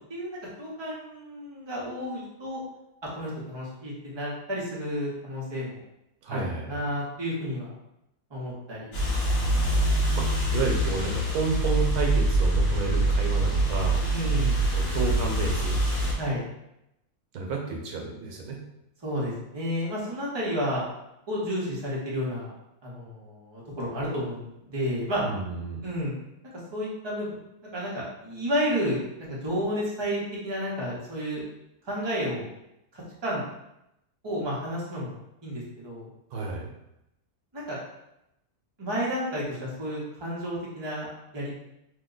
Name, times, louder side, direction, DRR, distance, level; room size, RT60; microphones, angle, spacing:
voice 1, 0.1-2.6 3.0-5.8 6.3-7.8 8.3-9.0 14.1-14.6 16.1-16.4 19.0-20.8 21.3-22.5 22.8-25.2 25.8-26.1 26.7-27.3 27.7-31.4 31.8-32.5 32.9-33.4 34.2-35.2 35.4-36.1 37.5-37.8 38.8-41.1 41.3-41.6, equal, 25° right, -6 dB, 0.7 m, -31 dB
voice 2, 6.2-6.8 10.1-10.3 10.5-14.0 14.7-15.8 17.3-18.6 25.2-25.8 36.3-36.7, right 4 dB, 80° right, 0 dB, 1.2 m, -31 dB
sound 1, 8.9-16.1, right 1 dB, 65° left, 1.3 m, -24 dB
2.9 x 2.2 x 3.7 m, 0.86 s
omnidirectional pair, 1.6 m